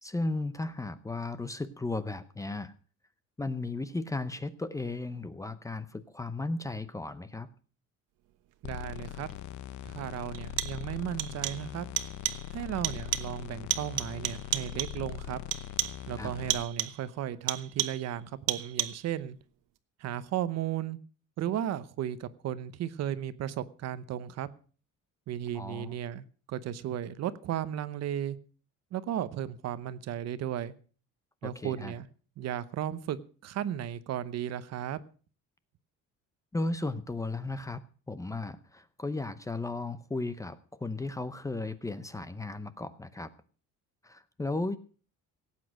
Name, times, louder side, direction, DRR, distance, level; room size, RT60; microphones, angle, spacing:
voice 1, 0.0-2.7 3.4-7.5 16.2-16.3 25.5-26.0 31.4-31.9 36.5-37.8 38.1-43.3 44.0-44.8, left 2 dB, 10° left, 13 dB, 0.7 m, -35 dB
sound 1, 8.6-16.6, left 12 dB, 70° left, 0.9 m, -41 dB
voice 2, 8.6-9.3 9.8-11.9 12.5-15.4 16.1-19.4 20.0-21.0 21.4-24.5 25.3-28.4 28.9-30.7 31.4-32.1 32.4-35.0, right 11 dB, 55° right, 15 dB, 0.9 m, -35 dB
sound 2, 9.3-9.4 10.3-10.9 11.2-11.7 12.0-12.5 12.8-13.4 13.7-15.1 15.5-16.1 16.5-17.1 17.5-18.1 18.5-19.1, right 14 dB, 85° right, 1.2 m, -33 dB
17.5 x 8.6 x 6.2 m, 0.40 s
cardioid pair, 165°, 31 cm